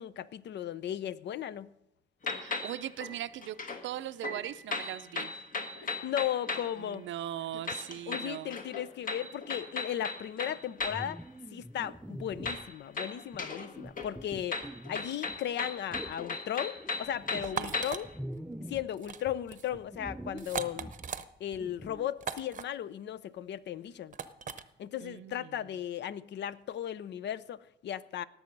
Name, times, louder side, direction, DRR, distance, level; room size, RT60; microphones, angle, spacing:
voice 1, 0.0-1.7 5.8-7.1 8.1-11.2 11.5-14.6 14.9-18.1 18.7-20.9 21.4-24.1 24.8-28.2, left 10 dB, 60° left, 0.6 m, -36 dB
sound 1, 2.2-3.9 4.2-6.8 7.7-11.1 12.5-13.7 14.0-18.1, left 3 dB, 45° left, 1.5 m, -37 dB
voice 2, 2.4-3.6 3.8-5.3 6.8-8.6 17.3-17.8 25.0-25.7, right 12 dB, 75° right, 0.5 m, -40 dB
sound 2, 10.8-12.7 13.3-15.4 15.9-16.2 16.8-19.0 19.2-22.1, right 1 dB, 5° right, 0.4 m, -45 dB
sound 3, 17.4-18.0 18.9-19.2 19.5-19.7 20.4-21.2 22.2-22.6 24.1-24.6, right 7 dB, 40° right, 0.8 m, -38 dB
18.0 x 7.0 x 5.3 m
cardioid pair, 90°, 20 cm